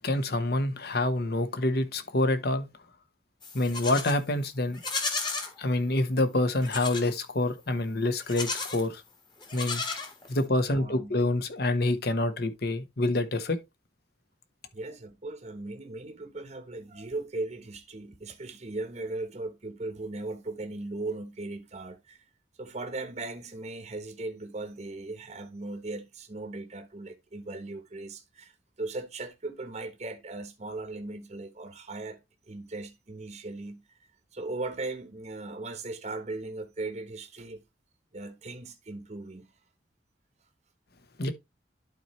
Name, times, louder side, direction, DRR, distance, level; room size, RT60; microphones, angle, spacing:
voice 1, 0.0-2.7 3.5-4.8 5.6-9.0 9.5-9.8 10.3-13.6 41.2-41.3, left 2 dB, 60° left, 1.1 m, -27 dB
Livestock farm animals working animals, 3.4-4.2 4.7-5.5 6.6-7.1 8.2-8.9 9.4-10.5, left 4 dB, 25° left, 1.5 m, -33 dB
voice 2, 10.7-11.1 14.7-22.2 22.6-32.2 32.5-34.0 34.3-37.6 38.1-39.5, right 2 dB, 40° right, 1.0 m, -38 dB
11.5 x 4.4 x 3.1 m
head